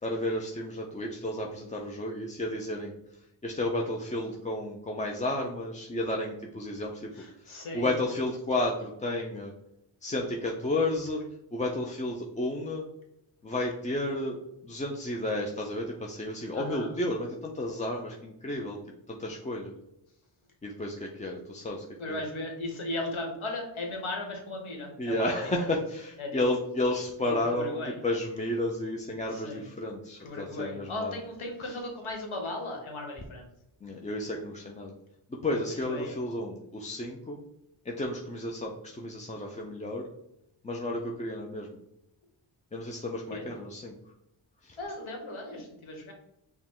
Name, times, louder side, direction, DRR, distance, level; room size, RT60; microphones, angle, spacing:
voice 1, 0.0-7.1 7.4-9.5 10.0-11.2 11.5-12.9 13.4-14.4 14.6-18.8 19.1-19.7 20.6-22.2 25.0-31.2 31.6-31.8 33.8-34.9 35.3-37.4 37.8-40.1 40.6-41.8 42.7-44.0 44.6-44.8, left 1 dB, 15° left, 0 dB, 0.3 m, -32 dB
voice 2, 7.1-7.9 16.5-16.9 22.0-25.3 26.2-26.4 27.2-27.9 29.3-29.6 30.2-33.5 35.9-36.2 43.3-43.4 44.8-46.1, left 2 dB, 75° left, 2 dB, 1.2 m, -36 dB
4.8 x 2.2 x 3.6 m, 0.81 s
cardioid pair, 85°, 48 cm